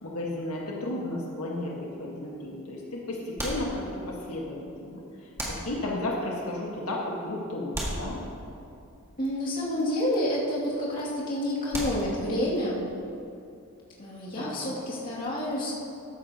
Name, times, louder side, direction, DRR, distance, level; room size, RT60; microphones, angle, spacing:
voice 1, 0.0-5.0 5.6-8.2 14.3-14.7, left 1 dB, 90° left, -3 dB, 1.6 m, -33 dB
sound 1, 1.5-2.1 3.4-4.3 5.4-6.2 7.7-8.8 11.7-12.5, equal, 10° right, 1.9 m, -36 dB
voice 2, 9.2-12.9 14.0-15.7, left 1 dB, 40° left, -7 dB, 2.5 m, -29 dB
14.0 x 11.5 x 3.0 m, 2.6 s
head